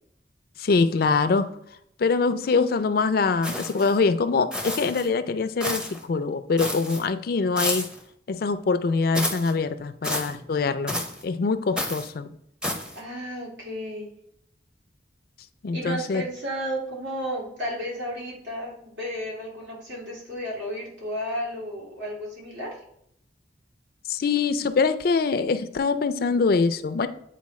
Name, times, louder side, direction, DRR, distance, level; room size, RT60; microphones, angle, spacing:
voice 1, 0.6-1.4 2.0-5.8 6.1-7.8 8.3-10.9 11.2-12.3 15.6-16.2 24.1-27.1, left 4 dB, 55° left, 11 dB, 0.4 m, -23 dB
sound 1, 3.4-4.0 4.5-5.1 5.6-6.0 6.6-7.0 7.6-8.0 9.1-9.5 10.0-10.3 10.9-11.2 11.8-12.1 12.6-13.0, left 1 dB, 5° right, 0.6 m, -30 dB
voice 2, 12.9-14.1 15.7-22.8, equal, 80° right, -3 dB, 2.2 m, -33 dB
8.4 x 4.1 x 3.1 m, 0.73 s
head